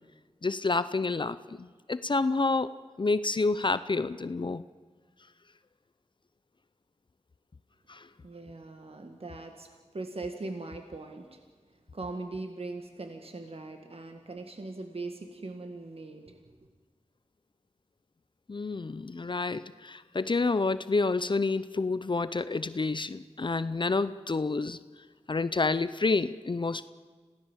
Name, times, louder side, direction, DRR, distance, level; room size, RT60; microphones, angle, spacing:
voice 1, 0.4-4.6 7.9-8.1 18.5-24.8 25.3-26.9, left 3 dB, 45° left, 14 dB, 0.6 m, -29 dB
voice 2, 8.2-9.7 9.9-11.4 11.9-16.4, right 3 dB, 55° right, 5 dB, 1.9 m, -40 dB
27.0 x 17.5 x 7.4 m, 1.5 s
wide cardioid pair, 65°, 12 cm